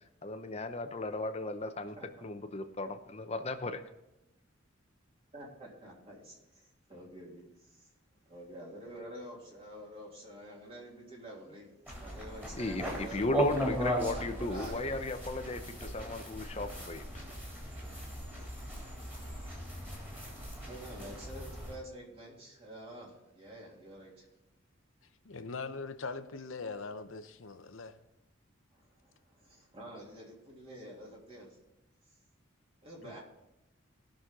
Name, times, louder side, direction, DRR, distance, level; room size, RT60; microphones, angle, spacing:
voice 1, 0.2-2.0 2.2-3.8 12.6-17.0, left 2 dB, 30° left, 0.8 m, -35 dB
voice 2, 1.8-2.3 5.3-7.9 8.3-13.2 13.9-14.9 20.7-24.2 28.7-31.5 32.8-33.2, right 1 dB, 30° right, 3.1 m, -48 dB
sound 1, 11.9-21.7, equal, 10° right, 3.4 m, -38 dB
voice 3, 25.2-27.9 33.0-33.2, left 4 dB, 75° left, 0.8 m, -41 dB
18.0 x 6.4 x 3.8 m
head